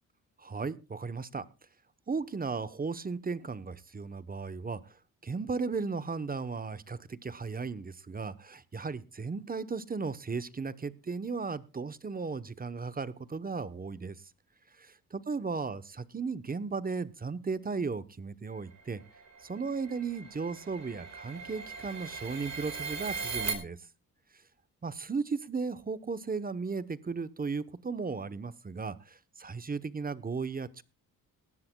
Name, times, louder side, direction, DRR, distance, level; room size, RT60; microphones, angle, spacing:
voice 1, 0.4-1.5 2.1-5.0 5.2-14.2 14.8-19.0 19.4-23.8 24.8-30.8, right 4 dB, 25° right, 15 dB, 0.9 m, -36 dB
sound 1, 18.8-23.5, right 5 dB, 50° right, 4.2 m, -39 dB
19.0 x 13.5 x 2.2 m, 0.31 s
cardioid pair, 90°, 36 cm